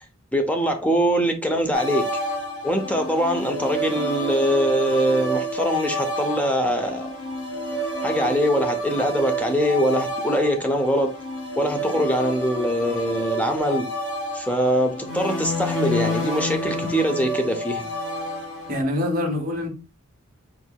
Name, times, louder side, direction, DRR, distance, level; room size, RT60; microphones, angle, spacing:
voice 1, 0.3-2.1 2.6-7.1 8.0-11.1 11.6-13.9 14.3-17.9, equal, 5° left, 0.7 m, -23 dB
sound 1, 1.7-18.8, equal, 80° left, 1.5 m, -29 dB
voice 2, 18.7-19.7, left 1 dB, 45° right, 1.4 m, -25 dB
4.6 x 4.0 x 2.3 m
head